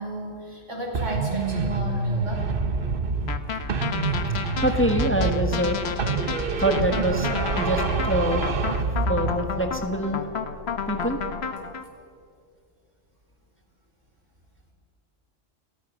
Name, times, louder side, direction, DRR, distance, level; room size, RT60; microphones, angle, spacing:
voice 1, 0.0-2.4, right 1 dB, 75° right, -1 dB, 5.2 m, -33 dB
sound 1, 0.9-3.4 3.7-5.7 6.0-9.4, right 4 dB, 50° right, 1.2 m, -26 dB
sound 2, 1.7-11.5, equal, 80° left, 4.9 m, -41 dB
sound 3, 3.3-11.8, left 6 dB, 60° left, 1.3 m, -32 dB
voice 2, 4.6-5.8 6.6-7.3 7.6-8.4 9.1-10.2 10.9-11.2, equal, 10° left, 5 dB, 1.4 m, -25 dB
29.0 x 14.5 x 6.4 m, 2.3 s
omnidirectional pair, 1.3 m